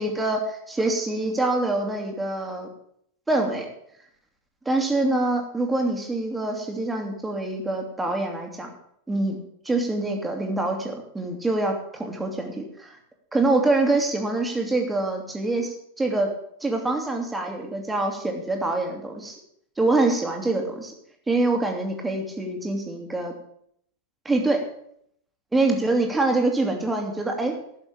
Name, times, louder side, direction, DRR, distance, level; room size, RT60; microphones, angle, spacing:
voice 1, 0.0-2.7 3.3-3.7 4.6-8.7 9.1-13.0 13.3-16.3 16.6-19.4 19.8-20.9 21.3-23.3 24.2-24.6 25.5-27.5, right 2 dB, 10° right, 2 dB, 2.6 m, -25 dB
12.0 x 7.1 x 8.5 m, 0.68 s
figure-of-eight pair, 90°, 0 cm